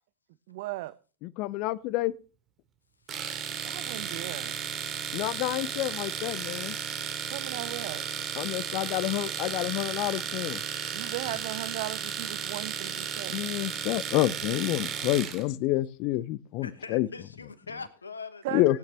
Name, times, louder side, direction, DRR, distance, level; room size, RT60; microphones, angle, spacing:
voice 1, 0.5-1.0 3.6-4.6 7.3-8.1 10.9-13.5 18.4-18.8, right 17 dB, 60° right, 0.5 m, -37 dB
voice 2, 1.4-2.1 5.1-6.7 8.4-10.6 13.3-17.1 18.5-18.8, left 16 dB, 50° left, 0.6 m, -28 dB
Domestic sounds home sounds, 3.1-15.4, right 8 dB, 40° right, 2.3 m, -34 dB
voice 3, 16.6-18.8, left 4 dB, 90° left, 1.2 m, -42 dB
18.0 x 9.4 x 2.9 m
hypercardioid pair, 85°, 0 cm